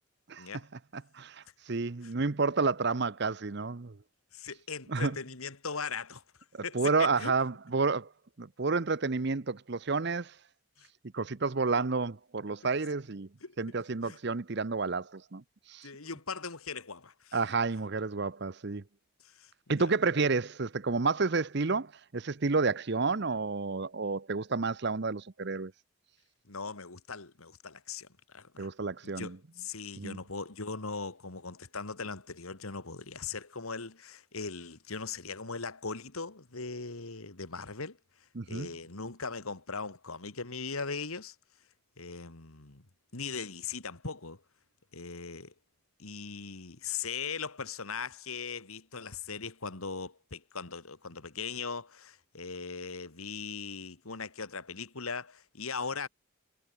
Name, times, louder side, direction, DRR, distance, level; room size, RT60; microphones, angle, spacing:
voice 1, 0.9-4.0 4.9-5.2 6.5-8.1 8.4-10.3 11.1-13.3 13.6-15.4 15.7-15.9 17.3-18.8 19.7-25.7 28.6-29.4 30.0-30.2 38.4-38.7, right 4 dB, 50° right, 0.7 m, -30 dB
voice 2, 4.3-6.2 6.6-7.3 10.8-10.9 13.4-13.6 14.0-14.2 15.8-17.4 19.2-19.9 26.5-28.7 29.0-38.0 38.5-41.4 42.0-42.8 43.1-44.4 44.9-45.5 46.0-56.1, left 5 dB, 80° left, 2.2 m, -39 dB
head